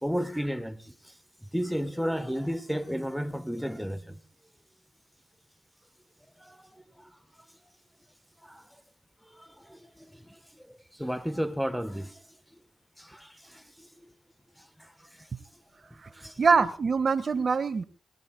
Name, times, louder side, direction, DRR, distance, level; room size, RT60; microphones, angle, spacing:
voice 1, 0.0-4.2 6.4-7.1 8.4-8.8 9.2-12.3 13.0-14.1 14.6-15.5 15.9-16.4, equal, ahead, 1.3 m, -34 dB
voice 2, 16.4-17.8, right 5 dB, 50° right, 1.6 m, -24 dB
25.0 x 19.5 x 2.3 m
supercardioid pair, 55°, 0 cm